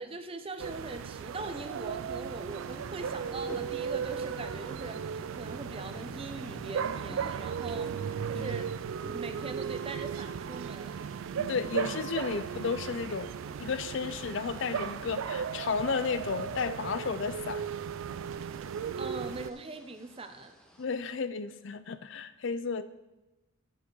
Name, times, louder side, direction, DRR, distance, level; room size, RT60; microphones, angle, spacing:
voice 1, 0.0-7.9 8.3-8.7 9.1-11.0 19.0-20.5, right 3 dB, 25° right, 8 dB, 0.6 m, -41 dB
sound 1, 0.6-19.5, right 7 dB, 70° right, 0.3 m, -36 dB
Growling, 1.6-5.4 5.7-8.0 8.6-14.4 14.8-15.5 15.9-19.7, left 1 dB, 25° left, 2.0 m, -56 dB
sound 2, 2.5-20.9, equal, 5° left, 0.8 m, -53 dB
voice 2, 11.3-13.3 13.6-17.7 20.8-22.8, left 5 dB, 60° left, 12 dB, 0.5 m, -33 dB
11.0 x 7.6 x 3.9 m, 1.0 s
head